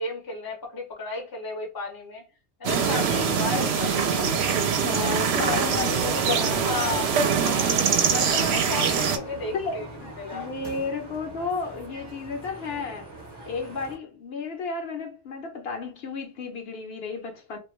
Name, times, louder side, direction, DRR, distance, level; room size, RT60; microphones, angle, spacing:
voice 1, 0.0-2.2 2.6-4.7 4.9-5.7 6.3-9.9 10.2-10.5, left 3 dB, 25° left, 0.5 m, -34 dB
sound 1, 2.6-9.2, right 6 dB, 70° right, 0.8 m, -23 dB
sound 2, 2.8-14.0, right 2 dB, 25° right, 0.7 m, -41 dB
voice 2, 4.8-7.1 9.5-13.2 13.5-17.6, left 4 dB, 65° left, 0.8 m, -33 dB
2.3 x 2.2 x 3.0 m
omnidirectional pair, 1.2 m